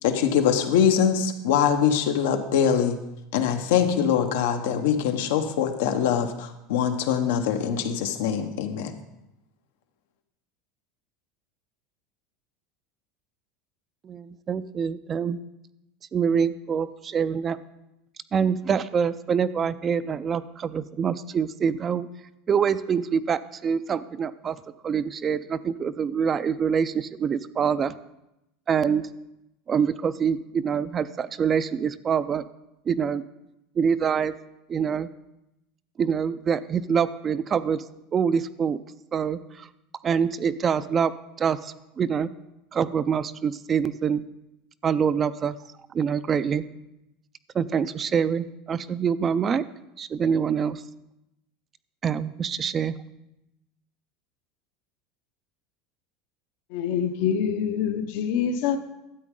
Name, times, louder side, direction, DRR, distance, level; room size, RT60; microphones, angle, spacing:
voice 1, 0.0-3.0 3.3-8.9, left 8 dB, 85° left, 1.1 m, -23 dB
voice 2, 14.0-15.4 16.1-17.6 18.3-22.1 22.5-24.6 24.8-27.9 28.7-29.1 29.7-32.4 32.9-33.2 33.8-34.4 34.7-35.1 36.0-37.8 38.1-38.8 39.1-39.7 40.0-41.1 41.4-42.3 42.7-44.2 44.8-45.6 45.9-46.6 47.5-49.6 50.0-50.8 52.0-53.0, right 7 dB, 25° right, 0.4 m, -25 dB
voice 3, 56.7-58.8, left 8 dB, 65° left, 0.8 m, -25 dB
13.0 x 8.3 x 3.7 m
supercardioid pair, 145°, 0 cm